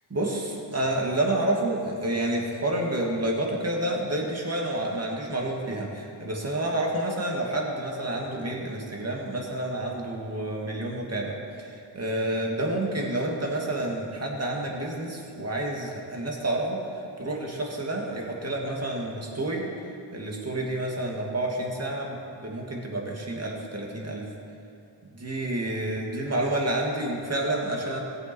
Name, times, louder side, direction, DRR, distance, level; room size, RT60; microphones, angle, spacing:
voice 1, 0.1-16.8 17.2-19.7 20.1-24.3 25.1-28.0, right 1 dB, 30° right, -1 dB, 2.4 m, -29 dB
17.5 x 7.7 x 4.6 m, 2.5 s
cardioid pair, 65°, 46 cm